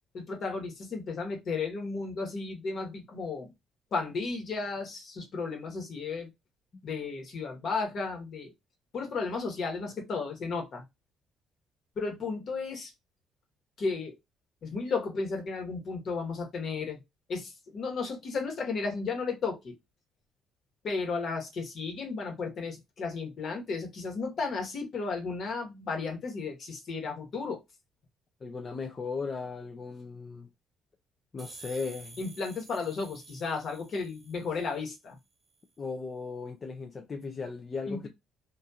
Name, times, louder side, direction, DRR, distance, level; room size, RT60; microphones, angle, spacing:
voice 1, 0.1-3.5 3.9-6.3 6.8-8.5 8.9-10.8 12.0-12.9 13.8-14.2 14.6-17.0 17.3-19.7 20.8-27.6 32.2-35.2 37.9-38.1, left 4 dB, 60° left, 1.2 m, -34 dB
voice 2, 28.4-30.5 31.3-32.2 35.8-38.1, left 4 dB, 40° left, 0.4 m, -37 dB
sound 1, 31.4-35.0, right 4 dB, 35° right, 0.7 m, -51 dB
2.5 x 2.3 x 2.7 m
supercardioid pair, 75°, 0 cm